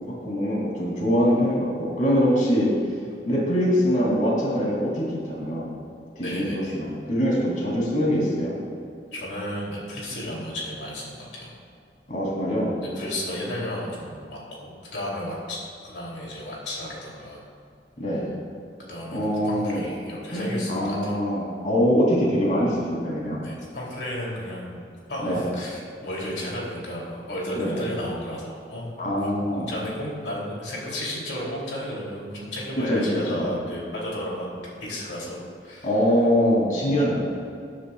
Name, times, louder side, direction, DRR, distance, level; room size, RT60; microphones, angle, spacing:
voice 1, 0.1-2.7 3.3-5.7 6.2-8.5 12.1-12.7 18.0-18.3 19.1-19.8 20.3-23.4 25.2-25.4 27.6-27.8 29.0-29.7 32.9-33.5 35.8-37.2, equal, 50° left, -4 dB, 2.8 m, -23 dB
voice 2, 6.2-6.7 9.1-11.5 12.8-17.5 18.8-21.2 23.4-24.8 25.1-35.9, left 1 dB, 80° left, -4 dB, 2.9 m, -33 dB
18.0 x 9.8 x 2.3 m, 2.4 s
head